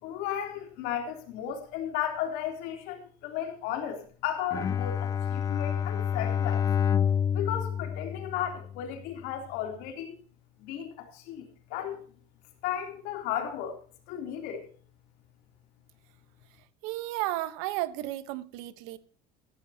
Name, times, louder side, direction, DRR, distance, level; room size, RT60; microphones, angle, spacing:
voice 1, 0.0-6.6 7.3-10.2 10.6-12.0 12.6-13.8 14.1-14.7, left 10 dB, 70° left, 3.4 m, -34 dB
Bowed string instrument, 4.5-8.9, left 8 dB, 20° left, 0.4 m, -28 dB
voice 2, 16.8-19.0, right 16 dB, 90° right, 1.2 m, -33 dB
15.0 x 14.5 x 2.9 m
cardioid pair, 160°, 16 cm